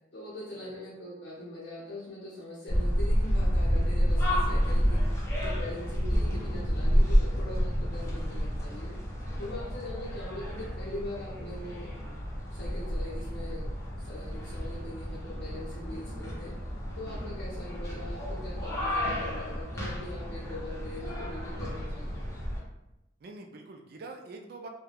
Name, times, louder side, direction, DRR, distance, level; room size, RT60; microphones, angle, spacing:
voice 1, 0.1-9.0 9.4-11.9 12.5-13.7 14.0-16.5 17.0-22.2, left 1 dB, 65° left, -7 dB, 0.6 m, -42 dB
sound 1, 2.7-22.6, equal, 15° left, 0.6 m, -30 dB
voice 2, 23.2-24.7, right 3 dB, 50° right, 3 dB, 0.4 m, -45 dB
2.4 x 2.2 x 3.3 m, 0.91 s
head